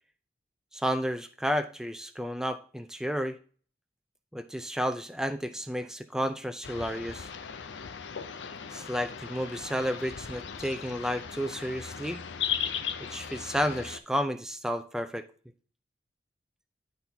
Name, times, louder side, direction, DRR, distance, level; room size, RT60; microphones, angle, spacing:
voice 1, 0.7-3.4 4.3-7.3 8.7-12.2 13.0-15.3, equal, 5° right, 8 dB, 0.5 m, -32 dB
sound 1, 6.6-14.0, left 7 dB, 85° left, 0.6 m, -37 dB
11.0 x 4.0 x 2.8 m, 0.41 s
head